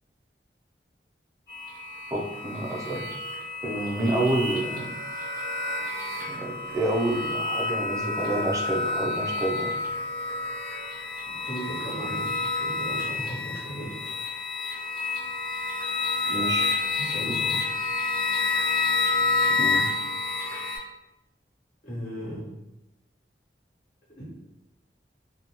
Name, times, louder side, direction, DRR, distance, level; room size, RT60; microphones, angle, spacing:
sound 1, 1.5-20.8, left 3 dB, 25° left, 1.2 m, -29 dB
voice 1, 2.1-3.1 3.6-5.0 6.3-9.7 16.2-16.8 17.3-17.4 19.6-19.9, right 1 dB, 20° right, -1 dB, 0.4 m, -28 dB
voice 2, 11.2-14.4 17.0-17.6 21.8-22.5 24.1-24.2, right 1 dB, 50° left, -8 dB, 1.4 m, -37 dB
2.6 x 2.1 x 2.9 m, 0.93 s
head